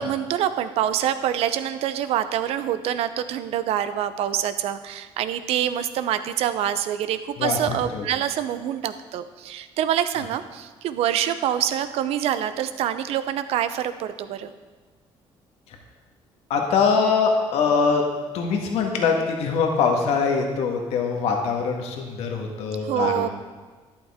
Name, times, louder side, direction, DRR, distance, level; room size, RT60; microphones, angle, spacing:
voice 1, 0.0-14.5 22.8-23.3, right 10 dB, 75° right, 11 dB, 0.7 m, -26 dB
voice 2, 7.4-8.0 15.7-15.8 16.5-18.0 18.3-23.3, left 5 dB, 80° left, 2 dB, 1.6 m, -23 dB
12.0 x 11.0 x 3.7 m, 1.4 s
cardioid pair, 140°, 10 cm